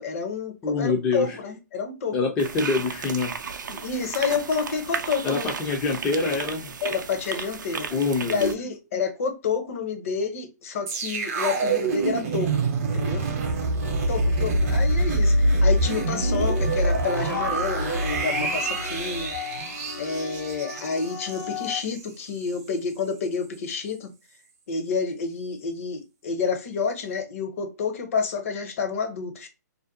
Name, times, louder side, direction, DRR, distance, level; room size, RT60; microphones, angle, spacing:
voice 1, 0.0-2.2 3.8-5.5 6.8-7.9 8.3-12.5 12.8-13.2 14.1-19.3 20.0-24.1 24.7-29.5, left 5 dB, 45° left, 0.6 m, -29 dB
voice 2, 0.6-1.4 2.1-3.3 3.7-3.8 5.2-6.7 7.9-8.5, left 4 dB, 15° left, 0.3 m, -25 dB
sound 1, 2.4-8.5, right 6 dB, 85° right, 0.4 m, -34 dB
sound 2, 10.9-22.0 22.4-22.5, right 2 dB, 50° right, 0.7 m, -25 dB
sound 3, 13.8-21.8, left 8 dB, 90° left, 0.6 m, -37 dB
2.5 x 2.1 x 2.5 m
hypercardioid pair, 155°, 10 cm